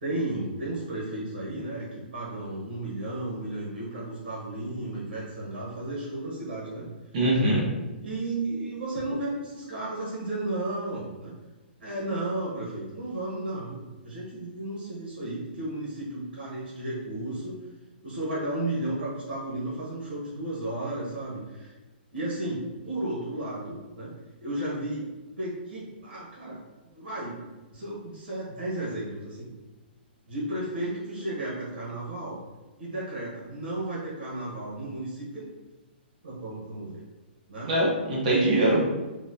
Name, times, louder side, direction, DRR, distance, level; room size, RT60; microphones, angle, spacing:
voice 1, 0.0-6.9 8.0-11.3 11.8-17.5 18.0-21.7 22.1-24.1 24.4-25.1 25.4-27.4 27.7-29.5 30.3-32.4 32.8-35.5 36.2-37.0 37.5-37.7 38.3-38.8, right 2 dB, 85° right, -6 dB, 1.1 m, -33 dB
voice 2, 7.1-7.6 37.7-38.8, right 1 dB, 45° right, -4 dB, 1.1 m, -23 dB
3.9 x 2.1 x 2.6 m, 1.2 s
hypercardioid pair, 165°, 6 cm